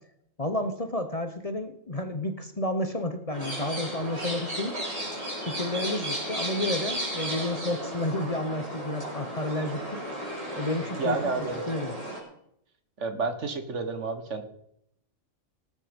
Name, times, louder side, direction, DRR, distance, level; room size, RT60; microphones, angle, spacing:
voice 1, 0.4-4.7 5.5-10.0 10.6-11.2 11.7-11.9, left 1 dB, 30° left, 8 dB, 1.1 m, -31 dB
sound 1, 3.3-12.2, right 1 dB, 25° right, 5.3 m, -34 dB
voice 2, 11.0-11.6 13.0-14.4, right 3 dB, 65° right, 7 dB, 1.8 m, -30 dB
18.5 x 8.9 x 5.3 m, 0.74 s
omnidirectional pair, 1.4 m